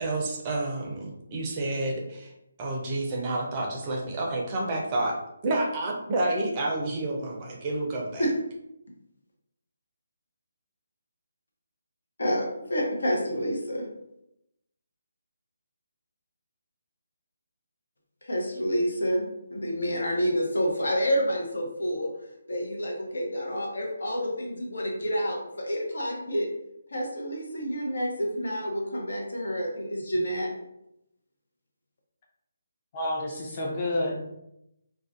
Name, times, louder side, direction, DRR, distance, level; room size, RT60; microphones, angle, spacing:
voice 1, 0.0-2.3 2.6-8.3, right 2 dB, 25° right, -1 dB, 0.5 m, -29 dB
voice 2, 12.2-13.9 18.2-22.1 22.5-26.5 26.9-30.5, equal, 75° left, 0 dB, 0.7 m, -28 dB
voice 3, 32.9-34.2, left 1 dB, 35° left, -2 dB, 0.7 m, -29 dB
2.4 x 2.1 x 2.5 m, 0.83 s
figure-of-eight pair, 150°, 0 cm